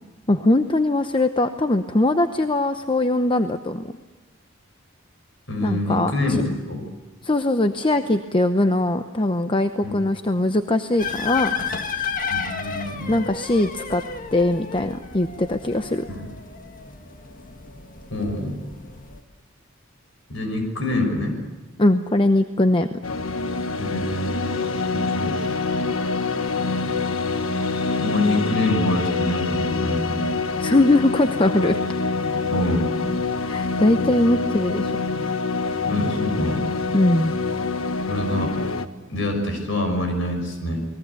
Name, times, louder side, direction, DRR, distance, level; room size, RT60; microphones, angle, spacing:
voice 1, 0.3-3.9 5.6-6.1 7.2-11.5 13.1-14.0 14.3-16.0 21.8-22.9 30.6-31.8 33.5-34.9 36.9-37.3, left 1 dB, 25° left, 8 dB, 0.8 m, -21 dB
voice 2, 5.5-6.8 9.8-10.0 12.3-13.2 16.1-16.2 18.1-18.6 20.3-21.3 23.8-24.6 24.9-25.5 28.0-30.2 32.5-33.0 35.9-36.6 38.1-38.5 39.1-40.9, left 1 dB, 65° left, 4 dB, 6.2 m, -25 dB
sound 1, 11.0-19.2, left 6 dB, 40° left, 1.7 m, -32 dB
sound 2, 23.0-38.9, left 3 dB, 90° left, 1.4 m, -25 dB
29.0 x 20.5 x 8.4 m, 1.2 s
head